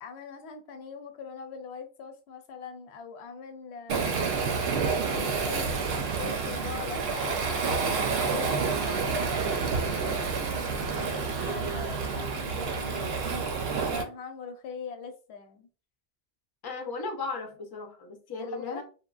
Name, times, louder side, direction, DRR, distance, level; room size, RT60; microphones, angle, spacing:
voice 1, 0.0-4.6 5.1-7.9 8.3-13.5 13.8-15.7 18.4-18.8, left 5 dB, 75° left, 0.8 m, -42 dB
Waves surf, 3.9-14.0, right 5 dB, 70° right, 0.8 m, -29 dB
voice 2, 16.6-18.8, left 3 dB, 35° left, 0.4 m, -36 dB
3.0 x 2.1 x 2.3 m
omnidirectional pair, 1.1 m